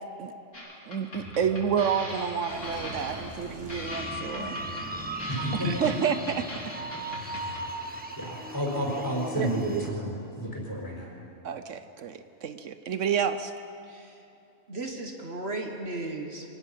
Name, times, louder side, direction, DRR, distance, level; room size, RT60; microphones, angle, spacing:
sound 1, 0.5-7.7, left 1 dB, 80° left, 4.0 m, -41 dB
voice 1, 0.9-4.6 5.6-6.5 7.2-7.6 9.3-9.8 11.4-13.5, right 7 dB, 75° right, 10 dB, 1.1 m, -30 dB
Car passing by / Engine, 2.5-9.0, equal, 25° right, 5.1 m, -46 dB
sound 2, 3.9-9.9, right 1 dB, 10° right, 1.2 m, -38 dB
voice 2, 5.3-5.9 8.2-11.1, equal, 15° left, -3 dB, 4.9 m, -31 dB
voice 3, 13.8-14.2 14.7-16.5, right 2 dB, 55° right, 2 dB, 1.7 m, -36 dB
24.5 x 19.0 x 5.7 m, 2.8 s
omnidirectional pair, 1.3 m